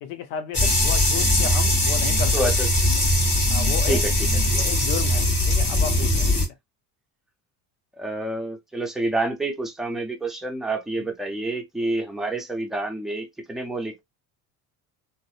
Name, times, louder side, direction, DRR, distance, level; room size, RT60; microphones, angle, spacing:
voice 1, 0.0-2.4 3.5-4.0 4.5-6.4, left 8 dB, 85° left, 0.7 m, -33 dB
sound 1, 0.5-6.5, left 1 dB, 25° left, 1.2 m, -21 dB
voice 2, 2.3-2.7 3.9-4.1 8.0-14.0, right 2 dB, ahead, 0.5 m, -28 dB
2.6 x 2.0 x 2.3 m
supercardioid pair, 80°, 46 cm